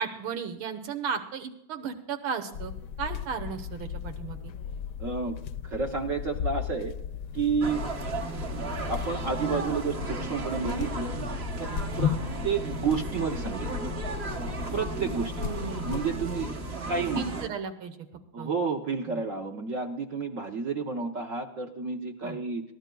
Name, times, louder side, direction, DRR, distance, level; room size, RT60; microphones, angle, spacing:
voice 1, 0.0-2.7 3.0-4.5 12.0-12.2 15.4-16.0 17.2-18.0 18.4-18.5 19.1-19.2 22.2-22.4, right 6 dB, 85° right, 6 dB, 2.0 m, -35 dB
sound 1, 2.5-16.5, left 8 dB, 70° left, 1.1 m, -36 dB
voice 2, 5.0-5.4 5.6-6.9 7.3-7.8 8.9-11.1 11.6-12.1 12.4-13.7 14.7-15.5 15.8-16.5 16.8-17.3 18.3-22.6, right 5 dB, 55° right, 4 dB, 0.9 m, -30 dB
sound 2, 7.6-17.5, right 3 dB, 40° right, 1.1 m, -35 dB
21.5 x 14.5 x 2.3 m, 0.82 s
omnidirectional pair, 2.2 m